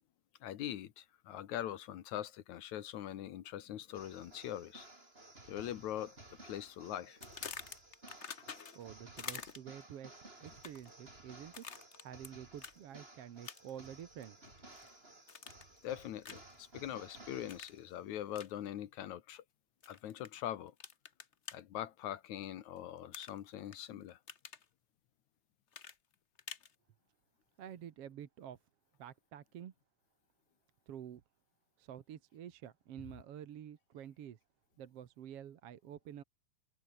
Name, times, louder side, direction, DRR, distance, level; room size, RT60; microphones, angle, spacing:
voice 1, 0.4-4.9 5.5-7.2 15.8-19.4 19.9-20.7 21.5-24.2, left 11 dB, 75° left, 2.7 m, -42 dB
sound 1, 3.9-18.0, right 2 dB, 20° right, 4.5 m, -57 dB
sound 2, 7.2-8.9 9.2-9.8 10.5-10.9 11.5-12.3 12.6-12.8 13.4-13.8 14.2-14.9 15.3-15.8 16.2-16.5 17.5-17.8 18.3-18.5 19.8-20.3 20.8-21.6 23.1-23.8 24.1-24.6 25.7-26.7, left 6 dB, 55° left, 0.7 m, -47 dB
voice 2, 8.8-11.7 12.0-14.4 27.6-28.6 29.0-29.7 30.9-31.2 31.8-34.4 34.8-36.2, right 10 dB, 60° right, 2.2 m, -49 dB
omnidirectional pair, 3.4 m